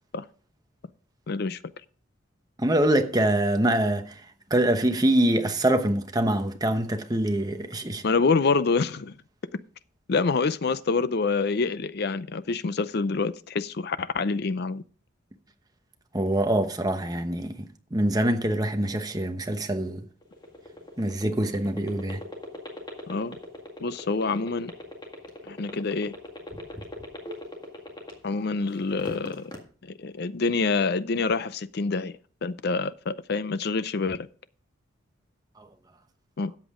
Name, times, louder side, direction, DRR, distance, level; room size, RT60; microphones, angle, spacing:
voice 1, 1.3-1.6 8.0-9.1 10.1-14.8 23.1-23.4 23.8-24.7 25.4-26.2 28.2-29.5 30.0-32.1 32.4-34.3 36.4-36.5, left 4 dB, 50° left, 0.5 m, -26 dB
voice 2, 2.6-4.1 4.5-8.0 16.1-20.0 21.0-22.2, right 1 dB, 20° right, 1.0 m, -24 dB
sound 1, 20.2-28.4 28.8-29.6, left 1 dB, 20° left, 1.9 m, -39 dB
13.0 x 8.3 x 3.7 m
head